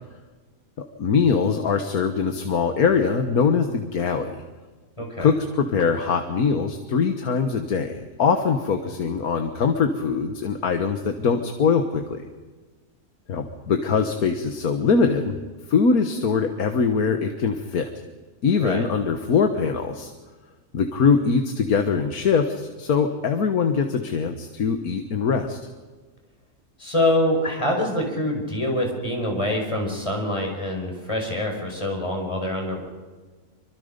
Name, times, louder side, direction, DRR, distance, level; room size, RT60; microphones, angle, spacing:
voice 1, 1.0-4.4 5.2-12.3 13.3-15.4 15.7-17.9 18.4-20.1 20.7-25.6, left 5 dB, 80° left, 6 dB, 1.8 m, -22 dB
voice 2, 5.0-5.3 18.6-18.9 26.8-32.8, left 1 dB, 20° left, 1 dB, 5.2 m, -25 dB
26.0 x 25.0 x 5.2 m, 1.3 s
omnidirectional pair, 1.5 m